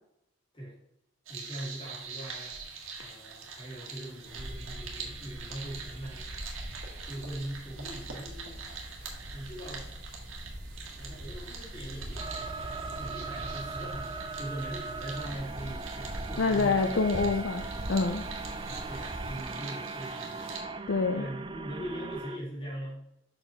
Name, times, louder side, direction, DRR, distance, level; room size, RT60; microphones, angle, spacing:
voice 1, 1.3-2.6 3.0-6.2 7.0-8.6 9.3-9.9 10.9-12.5 12.9-14.1 14.3-17.0 18.5-20.6 21.1-23.1, right 1 dB, 30° left, -5 dB, 3.1 m, -41 dB
sound 1, 1.3-20.6, right 5 dB, 90° right, 1.6 m, -44 dB
sound 2, 4.2-19.4, equal, 45° right, 1.1 m, -43 dB
sound 3, 12.2-22.4, right 3 dB, 25° right, 0.4 m, -39 dB
voice 2, 16.4-18.2 20.9-21.2, left 4 dB, 65° left, 6 dB, 0.5 m, -27 dB
6.1 x 5.1 x 5.0 m, 0.80 s
head